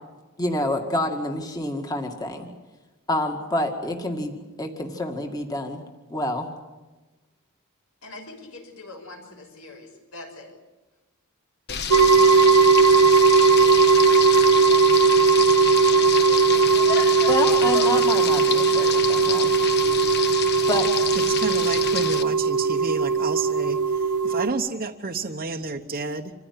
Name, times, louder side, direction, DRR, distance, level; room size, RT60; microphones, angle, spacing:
voice 1, 0.4-2.5 3.1-5.8 6.1-6.5 17.2-19.5 20.7-20.9, left 1 dB, 20° left, 3 dB, 2.1 m, -28 dB
voice 2, 8.0-10.5, left 2 dB, 75° left, 4 dB, 5.9 m, -42 dB
Frying (food), 11.7-22.2, left 7 dB, 50° left, 1.2 m, -29 dB
sound 1, 11.9-24.5, right 5 dB, 90° right, 0.9 m, -18 dB
voice 3, 21.1-26.3, right 3 dB, 40° right, 2 dB, 1.0 m, -30 dB
26.5 x 15.5 x 9.7 m, 1.2 s
head